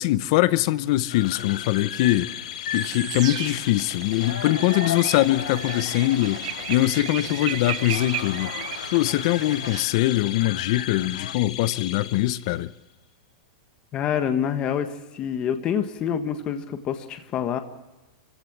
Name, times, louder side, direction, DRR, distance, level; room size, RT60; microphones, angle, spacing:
voice 1, 0.0-2.3 2.7-8.5 8.9-12.7, left 16 dB, 45° left, 0.8 m, -22 dB
sound 1, 0.9-12.7, left 11 dB, 60° left, 2.3 m, -37 dB
sound 2, 1.1-11.4, left 10 dB, 85° left, 0.6 m, -37 dB
sound 3, 2.7-9.9, right 13 dB, 60° right, 1.0 m, -35 dB
voice 2, 13.9-14.9 15.1-17.6, left 8 dB, 25° left, 1.6 m, -26 dB
27.0 x 16.0 x 7.4 m
supercardioid pair, 160°, 4 cm